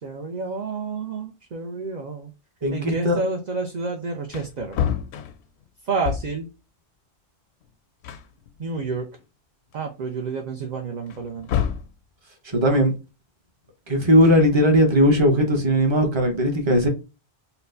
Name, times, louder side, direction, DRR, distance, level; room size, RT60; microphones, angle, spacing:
voice 1, 0.0-2.3 2.7-4.8 5.8-6.5 8.6-9.1 9.7-11.5, right 4 dB, 50° right, 0.6 m, -29 dB
voice 2, 2.6-3.2 12.5-12.9 13.9-16.9, equal, 30° right, 0.9 m, -18 dB
Wood, 4.3-6.5 7.6-7.7 8.0-9.2 9.7-9.8 11.1-12.0 14.0-14.9, left 9 dB, 85° left, 0.8 m, -30 dB
4.2 x 2.1 x 2.6 m
omnidirectional pair, 1.1 m